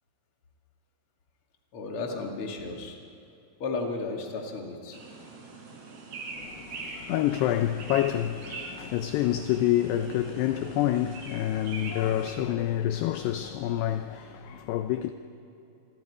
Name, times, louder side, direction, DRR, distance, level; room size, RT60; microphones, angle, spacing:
voice 1, 1.7-3.0 3.6-5.0, left 3 dB, 40° left, 2.1 m, -34 dB
sound 1, 4.9-12.3, right 3 dB, 70° right, 5.4 m, -42 dB
voice 2, 6.4-15.1, left 12 dB, 80° left, 2.5 m, -28 dB
27.5 x 22.5 x 4.9 m
omnidirectional pair, 5.3 m